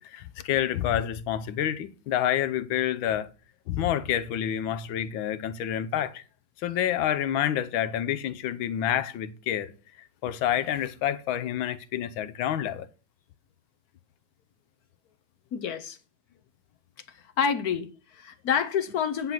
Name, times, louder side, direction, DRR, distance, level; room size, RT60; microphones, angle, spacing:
voice 1, 0.0-3.3 3.7-6.2 6.6-9.7 10.0-12.9, left 11 dB, 85° left, 1.5 m, -28 dB
voice 2, 15.5-16.0 17.1-19.3, left 7 dB, 60° left, 1.1 m, -28 dB
10.0 x 4.0 x 5.9 m
omnidirectional pair, 2.2 m